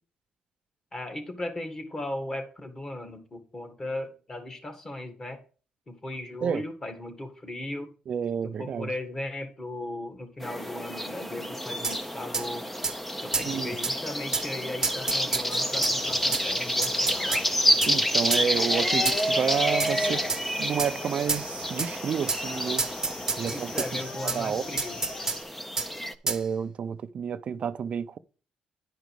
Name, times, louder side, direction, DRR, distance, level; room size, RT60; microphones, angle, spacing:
voice 1, 0.9-5.4 5.9-7.9 8.4-12.7 13.2-17.5 23.4-25.0, left 1 dB, 25° left, 1.8 m, -37 dB
voice 2, 8.1-8.9 13.4-13.8 17.9-20.2 20.6-22.8 23.4-23.7 24.2-24.8 26.2-28.2, right 7 dB, 50° right, 0.5 m, -30 dB
sound 1, 10.4-26.1, equal, 5° left, 0.6 m, -29 dB
sound 2, 11.8-12.0 12.3-12.5 12.8-13.0 13.3-13.5 13.8-13.9 14.3-14.5 14.8-15.9 16.3-16.4 16.8-17.4 17.8-17.9 18.3-18.5 19.0-19.3 19.8-19.9 20.3-20.4 20.8-20.9 21.3-21.5 21.8-21.9 22.3-22.4 22.8-23.9 24.3-24.4 24.8-25.4 25.8-25.9 26.3-26.4, right 4 dB, 20° right, 0.9 m, -29 dB
sound 3, 15.6-25.4, equal, 40° left, 2.1 m, -36 dB
10.5 x 5.2 x 4.7 m
cardioid pair, 115°, 3 cm